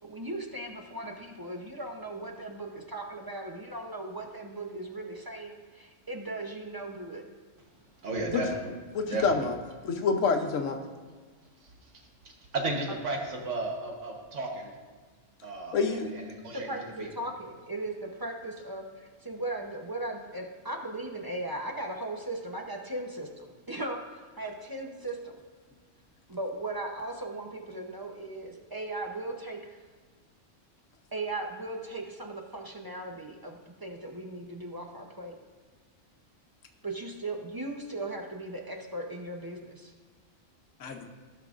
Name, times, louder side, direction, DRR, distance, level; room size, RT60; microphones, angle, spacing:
voice 1, 0.0-7.2 12.9-13.0 16.5-25.4 26.3-29.8 31.1-35.4 36.8-39.9, right 2 dB, 25° right, 2 dB, 0.6 m, -38 dB
voice 2, 8.0-8.6 9.1-9.3 11.6-11.9 12.5-14.7 15.4-17.1, right 2 dB, 70° right, 0 dB, 1.5 m, -34 dB
voice 3, 8.9-9.5 9.8-10.8 15.7-16.1 40.8-41.0, left 5 dB, 75° left, 5 dB, 1.1 m, -27 dB
16.0 x 5.7 x 2.5 m, 1.4 s
omnidirectional pair, 1.3 m